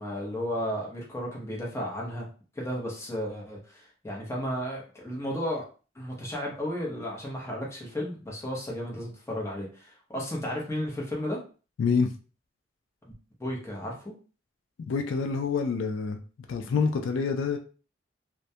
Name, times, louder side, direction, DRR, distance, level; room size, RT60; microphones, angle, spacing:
voice 1, 0.0-2.3 2.6-5.6 5.9-11.4 13.4-14.1, equal, 15° left, -3 dB, 0.7 m, -33 dB
voice 2, 14.9-16.2 16.5-17.6, left 5 dB, 80° left, 6 dB, 0.3 m, -26 dB
2.2 x 2.1 x 2.7 m, 0.36 s
head